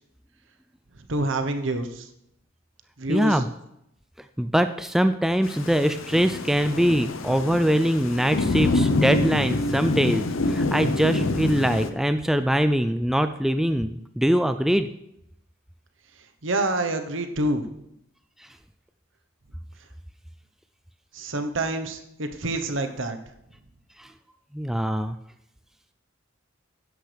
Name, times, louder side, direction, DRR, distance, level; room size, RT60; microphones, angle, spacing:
voice 1, 1.1-2.1 3.0-3.4 16.4-17.7 21.1-23.2, right 2 dB, 65° right, 7 dB, 1.1 m, -27 dB
voice 2, 3.1-3.5 4.4-14.9 24.0-24.1 24.5-25.2, equal, ahead, 9 dB, 0.3 m, -23 dB
Thunder / Rain, 5.4-11.9, left 2 dB, 80° left, 0.8 m, -26 dB
12.5 x 10.0 x 3.4 m, 0.79 s
head